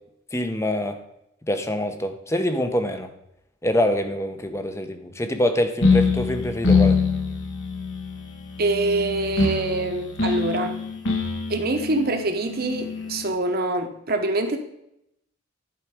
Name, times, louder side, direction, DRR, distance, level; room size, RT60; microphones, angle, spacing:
voice 1, 0.3-1.0 1.5-3.1 3.6-7.0, left 1 dB, 15° left, 7 dB, 0.8 m, -25 dB
sound 1, 5.8-13.3, left 4 dB, 70° left, 1.3 m, -24 dB
voice 2, 8.6-10.8 11.5-14.6, right 2 dB, 50° right, 5 dB, 1.0 m, -25 dB
11.0 x 4.9 x 4.9 m, 0.80 s
head